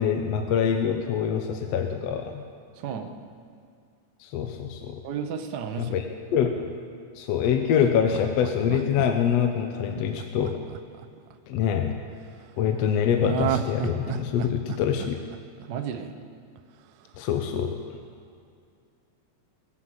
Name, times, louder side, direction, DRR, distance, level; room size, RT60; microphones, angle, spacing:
voice 1, 0.0-2.4 4.2-5.0 5.8-6.0 6.3-6.6 7.2-10.5 11.5-12.0 12.6-15.2 17.2-17.8, left 8 dB, 70° left, 5 dB, 1.8 m, -25 dB
voice 2, 2.7-3.1 5.0-6.0 15.7-16.1, right 7 dB, 65° right, 5 dB, 1.0 m, -33 dB
Laughter, 7.4-11.6 13.2-16.2 16.6-16.7, right 9 dB, 85° right, 2.0 m, -33 dB
21.5 x 7.7 x 7.9 m, 2.3 s
omnidirectional pair, 3.3 m